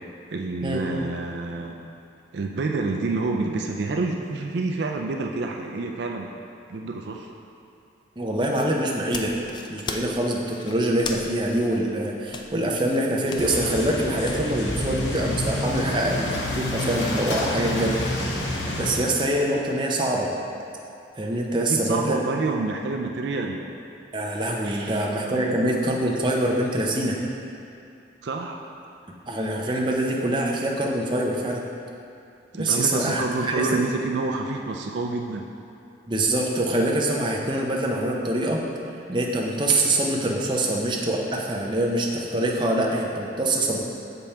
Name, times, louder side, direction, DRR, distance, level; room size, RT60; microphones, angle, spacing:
voice 1, 0.3-1.9 2.3-6.3 6.7-7.3 15.5-15.6 21.7-23.7 24.6-25.6 28.2-28.6 32.5-35.5, right 3 dB, 65° right, 2 dB, 0.4 m, -28 dB
voice 2, 8.2-9.3 9.7-18.4 18.8-20.3 21.2-22.2 24.1-27.2 29.3-31.6 32.5-33.8 36.1-38.6 39.1-43.8, right 1 dB, 25° right, -2 dB, 0.6 m, -24 dB
sound 1, 8.4-14.9, left 4 dB, 25° left, 0.3 m, -38 dB
sound 2, 13.4-19.0, left 1 dB, 75° left, 0.9 m, -28 dB
7.0 x 5.3 x 4.3 m, 2.6 s
head